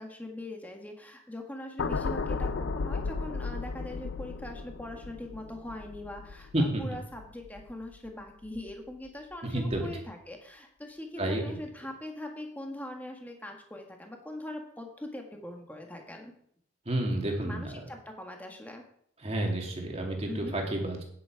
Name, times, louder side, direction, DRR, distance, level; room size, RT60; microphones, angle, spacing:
voice 1, 0.0-16.3 17.4-18.8 20.3-20.5, left 1 dB, 10° left, 2 dB, 1.6 m, -42 dB
sound 1, 1.8-8.1 8.4-8.7, left 4 dB, 70° left, 0.5 m, -35 dB
voice 2, 9.4-9.9 11.2-11.6 16.9-17.8 19.2-21.0, right 1 dB, 35° right, 1 dB, 2.3 m, -30 dB
9.7 x 8.7 x 4.7 m, 0.66 s
head